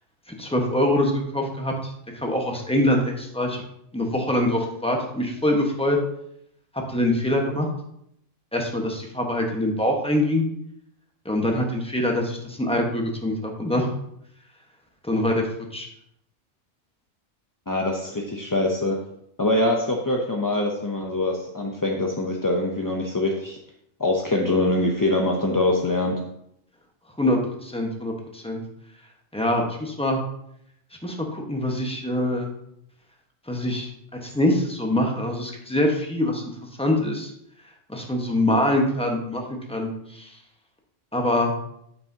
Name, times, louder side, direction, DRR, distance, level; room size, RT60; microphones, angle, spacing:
voice 1, 0.3-3.6 3.9-6.0 6.9-7.7 8.5-10.4 11.2-13.9 15.0-15.5 15.7-15.9 27.2-28.6 29.3-30.2 31.0-32.5 33.5-33.9 34.2-36.5 36.8-37.3 37.9-40.4 41.1-41.5, left 1 dB, 5° left, 1 dB, 1.1 m, -24 dB
voice 2, 17.7-19.0 19.4-23.6 24.0-26.2, left 2 dB, 25° left, 0 dB, 0.4 m, -24 dB
8.7 x 7.5 x 2.8 m, 0.75 s
omnidirectional pair, 1.3 m